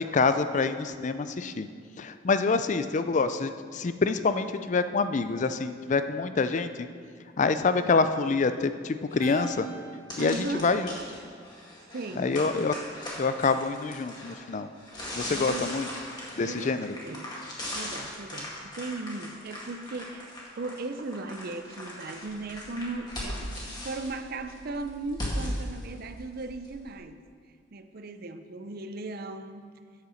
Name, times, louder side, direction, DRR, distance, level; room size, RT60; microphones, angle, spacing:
voice 1, 0.0-1.7 2.0-6.9 7.4-9.7 10.2-10.9 12.2-12.8 13.2-14.7 15.1-15.9 16.4-16.9, left 4 dB, 40° left, 10 dB, 0.4 m, -26 dB
sound 1, 9.1-9.2 9.7-9.8 10.1-26.9, left 1 dB, 20° left, 2.1 m, -39 dB
Keyboard (musical), 9.2-11.7, right 2 dB, 15° right, 2.6 m, -47 dB
voice 2, 10.2-10.7 11.9-12.4 15.2-15.7 16.4-17.3 17.7-27.2 27.7-29.7, right 3 dB, 55° right, 9 dB, 0.6 m, -37 dB
8.2 x 7.6 x 6.4 m, 2.1 s
head